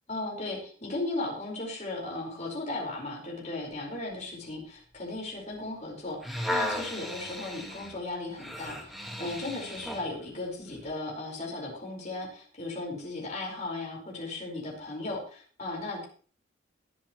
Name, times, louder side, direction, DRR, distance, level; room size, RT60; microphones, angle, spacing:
voice 1, 0.1-6.2 6.5-16.1, left 2 dB, 35° left, -1 dB, 5.0 m, -36 dB
sound 1, 6.2-10.1 10.7-10.9, left 1 dB, ahead, 1.8 m, -35 dB
21.5 x 8.5 x 3.2 m, 0.42 s
head